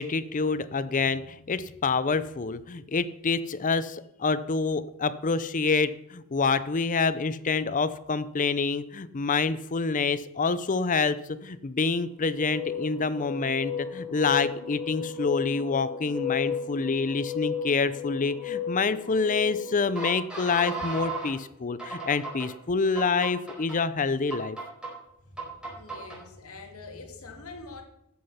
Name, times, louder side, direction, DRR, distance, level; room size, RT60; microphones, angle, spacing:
voice 1, 0.0-24.6, left 4 dB, 35° left, 15 dB, 0.5 m, -27 dB
sound 1, 12.3-21.3 21.8-22.5 23.0-23.8 24.3-24.9 25.4-26.2, left 4 dB, 5° right, 4.6 m, -34 dB
voice 2, 25.3-27.8, left 3 dB, 75° left, 4 dB, 2.5 m, -44 dB
14.0 x 8.6 x 5.7 m, 0.83 s
head